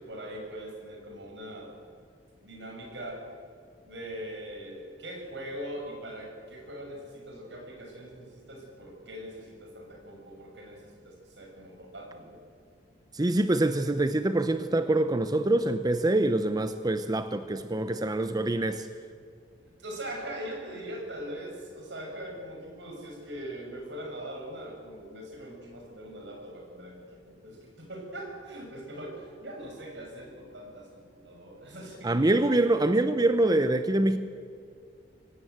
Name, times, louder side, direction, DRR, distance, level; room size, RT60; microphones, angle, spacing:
voice 1, 0.0-1.7 2.4-3.2 3.8-12.4 19.8-32.3, right 1 dB, 80° right, 6.4 m, -41 dB
voice 2, 13.1-18.9 32.0-34.2, right 2 dB, 20° right, 0.7 m, -25 dB
24.0 x 18.0 x 8.0 m
head